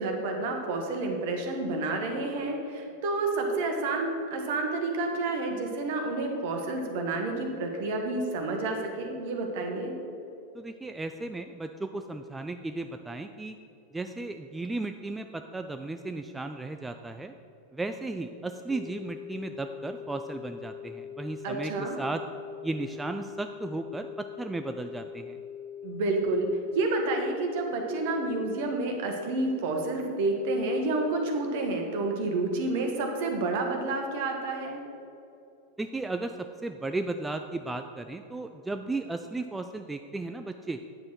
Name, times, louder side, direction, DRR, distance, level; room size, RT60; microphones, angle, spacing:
voice 1, 0.0-9.9 21.4-22.0 25.8-26.5 26.7-34.8, right 2 dB, 50° right, 3 dB, 1.4 m, -29 dB
voice 2, 10.5-13.6 13.9-17.3 17.7-22.2 22.6-25.4 35.8-40.8, right 2 dB, 10° right, 7 dB, 0.3 m, -35 dB
sound 1, 18.7-28.7, left 8 dB, 25° left, 0.7 m, -42 dB
9.3 x 7.3 x 4.6 m, 2.8 s
figure-of-eight pair, 90°, 0 cm